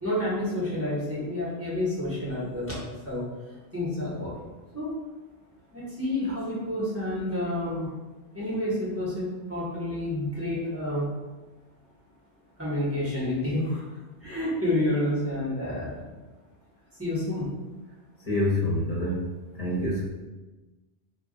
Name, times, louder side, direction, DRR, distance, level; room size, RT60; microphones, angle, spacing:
voice 1, 0.0-3.2 3.7-4.5 4.7-5.0 5.7-7.9 8.3-11.1 12.6-13.8 14.2-16.1 17.0-17.5 19.7-19.8, left 1 dB, 15° right, -9 dB, 0.8 m, -29 dB
voice 2, 18.3-19.2 19.6-20.0, left 1 dB, 40° left, -6 dB, 0.8 m, -26 dB
2.3 x 2.1 x 3.6 m, 1.2 s
omnidirectional pair, 1.1 m